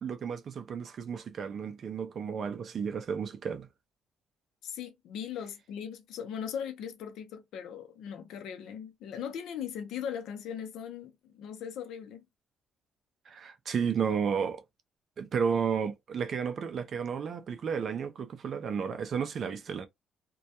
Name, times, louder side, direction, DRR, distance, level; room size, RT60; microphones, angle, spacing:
voice 1, 0.0-3.7 13.3-14.6 15.2-19.9, right 6 dB, 50° right, 0.4 m, -32 dB
voice 2, 4.6-12.3, left 8 dB, 80° left, 0.5 m, -39 dB
2.2 x 2.1 x 2.7 m
cardioid pair, 125°, 0 cm